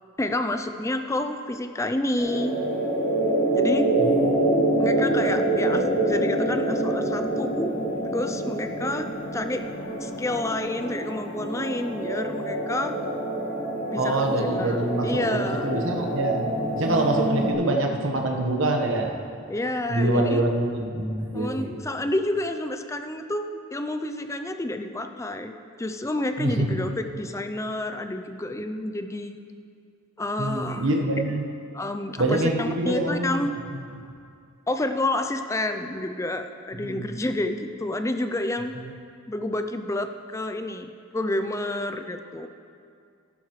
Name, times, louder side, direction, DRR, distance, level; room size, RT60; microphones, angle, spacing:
voice 1, 0.2-2.6 3.5-3.9 4.8-7.7 8.1-9.7 10.0-12.9 13.9-15.7 19.5-20.4 21.3-25.5 25.8-29.4 30.2-31.4 31.7-33.5 34.7-38.7 39.3-42.5, left 1 dB, 15° left, 7 dB, 0.4 m, -29 dB
sound 1, 2.2-17.5, right 1 dB, 35° left, 2.7 m, -26 dB
voice 2, 4.0-4.4 13.9-16.5 16.8-19.1 19.9-21.7 26.4-26.9 30.4-31.5 32.2-33.4 33.7-33.8 36.8-37.1 38.7-38.9, right 1 dB, 60° right, 1 dB, 1.2 m, -25 dB
14.5 x 11.5 x 3.2 m, 2.4 s
head